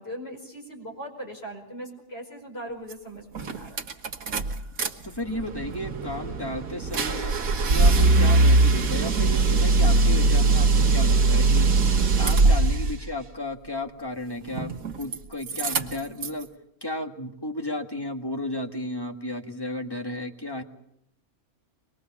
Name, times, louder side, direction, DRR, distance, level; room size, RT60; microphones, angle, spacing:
voice 1, 0.0-3.8, right 1 dB, 45° left, 2 dB, 5.4 m, -39 dB
sound 1, 2.9-3.0 3.4-4.9 5.2-13.0 14.5-15.2 15.4-16.4, right 3 dB, 75° right, 1.8 m, -21 dB
voice 2, 5.0-7.4 7.7-11.7 12.2-16.5 16.8-20.6, left 1 dB, 15° left, 4 dB, 1.6 m, -33 dB
24.0 x 21.0 x 7.2 m, 0.76 s
omnidirectional pair, 1.5 m